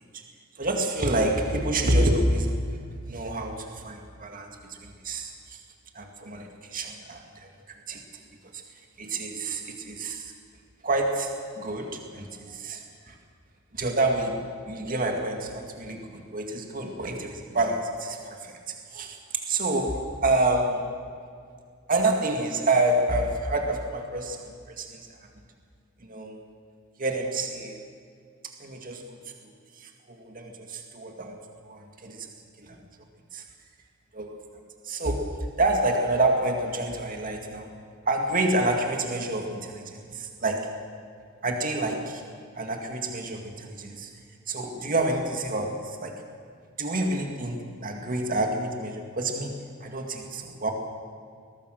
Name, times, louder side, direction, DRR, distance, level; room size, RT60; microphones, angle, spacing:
voice 1, 0.6-2.6 3.1-5.6 5.9-8.0 8.5-8.6 9.0-10.3 10.8-13.2 13.7-21.0 21.9-25.1 26.0-26.4 27.0-27.8 28.4-29.2 29.4-31.4 31.6-32.3 32.6-32.8 33.3-33.4 34.1-34.4 34.8-37.7 38.0-40.7 41.4-42.2 42.6-44.1 44.5-46.2 46.8-50.7, right 2 dB, 45° right, 3 dB, 2.2 m, -28 dB
21.5 x 19.5 x 6.6 m, 2.2 s
head